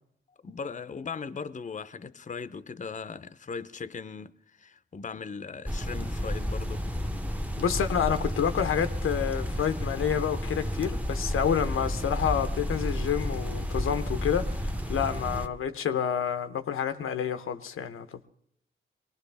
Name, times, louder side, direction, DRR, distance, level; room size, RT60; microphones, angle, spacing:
voice 1, 0.4-6.8, left 5 dB, 35° left, 0.6 m, -38 dB
sound 1, 5.7-15.5, equal, 5° right, 0.9 m, -31 dB
voice 2, 7.6-18.1, left 8 dB, 90° left, 0.7 m, -29 dB
22.5 x 18.5 x 3.4 m
cardioid pair, 60°, 21 cm